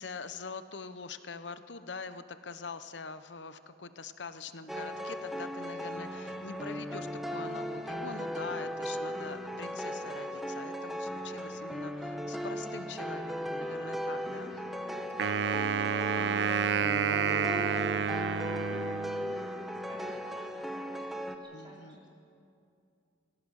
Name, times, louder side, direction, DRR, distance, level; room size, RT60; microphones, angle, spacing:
voice 1, 0.0-14.5 21.5-22.0, left 4 dB, 80° left, 11 dB, 0.9 m, -44 dB
sound 1, 4.7-21.4, equal, ahead, 1.0 m, -37 dB
voice 2, 14.2-22.1, right 1 dB, 30° right, -4 dB, 4.5 m, -53 dB
Wind instrument woodwind instrument, 15.2-19.5, right 7 dB, 75° right, 0.5 m, -30 dB
25.5 x 16.0 x 6.5 m, 2.5 s
head